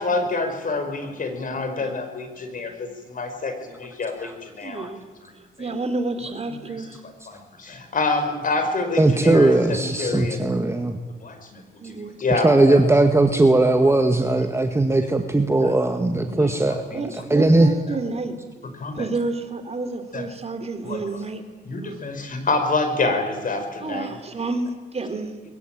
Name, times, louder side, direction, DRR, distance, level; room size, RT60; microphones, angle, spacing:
voice 1, 0.0-4.9 7.3-10.5 11.2-11.6 11.9-12.8 15.6-15.7 16.2-16.5 16.9-17.1 18.8-19.1 20.1-20.2 20.8-21.0 21.6-24.1, left 3 dB, 45° left, 7 dB, 5.1 m, -27 dB
voice 2, 4.6-5.0 5.6-7.0 11.8-12.2 16.9-18.7 18.9-21.4 21.8-22.0 23.8-25.4, right 3 dB, 30° right, 8 dB, 3.2 m, -30 dB
voice 3, 9.0-11.0 12.3-16.8 17.3-17.7, right 2 dB, 15° right, 5 dB, 1.9 m, -18 dB
22.5 x 22.0 x 9.0 m, 1.3 s
cardioid pair, 90°, 20 cm